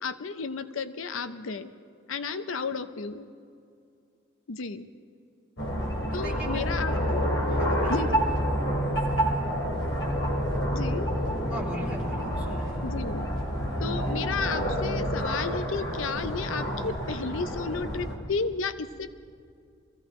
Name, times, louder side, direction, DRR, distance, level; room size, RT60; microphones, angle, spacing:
voice 1, 0.0-1.7 2.1-3.3 4.5-4.9 6.1-7.3 7.9-8.3 10.7-11.1 12.8-13.3 13.8-19.2, left 4 dB, 90° left, 11 dB, 0.7 m, -33 dB
sound 1, 5.6-18.2, equal, 70° left, 2.9 m, -28 dB
voice 2, 6.1-7.1 7.5-8.1 11.5-12.9, equal, 5° right, -5 dB, 3.2 m, -40 dB
23.5 x 15.5 x 3.7 m, 2.4 s
head